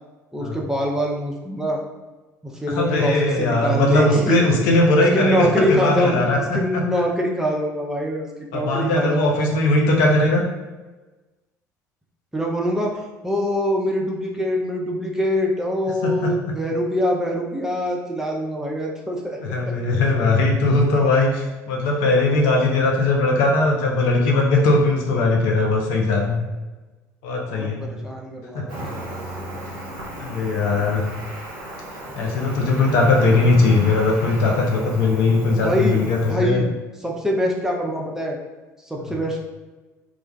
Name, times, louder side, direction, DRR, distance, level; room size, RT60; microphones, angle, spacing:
voice 1, 0.3-1.8 2.4-4.4 5.1-6.3 6.5-9.5 12.3-19.7 27.5-29.2 35.6-36.0 36.3-36.7 37.0-38.4 38.9-39.4, equal, 5° right, -1 dB, 0.5 m, -24 dB
voice 2, 2.7-6.8 8.5-10.4 16.0-16.3 19.4-26.4 27.2-27.9 28.5-28.7 30.2-31.0 32.2-36.6 39.0-39.1, left 2 dB, 60° left, 0 dB, 0.5 m, -19 dB
Cricket, 28.7-36.3, right 1 dB, 65° right, 0.7 m, -36 dB
2.4 x 2.2 x 3.1 m, 1.2 s
figure-of-eight pair, 60°, 9 cm